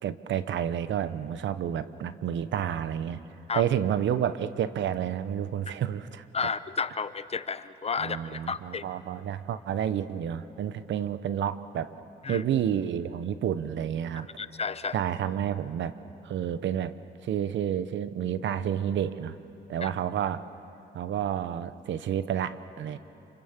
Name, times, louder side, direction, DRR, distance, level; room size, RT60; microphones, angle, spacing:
voice 1, 0.0-3.2 3.5-6.2 8.0-11.9 12.3-14.3 14.9-15.9 16.2-16.9 17.2-19.4 19.7-20.4 20.9-23.0, right 9 dB, 70° right, 13 dB, 1.0 m, -30 dB
voice 2, 6.3-8.9 12.2-12.4 14.4-15.0 19.8-19.9, left 5 dB, 30° left, 13 dB, 0.8 m, -32 dB
27.0 x 25.5 x 7.4 m, 2.9 s
cardioid pair, 90°, 20 cm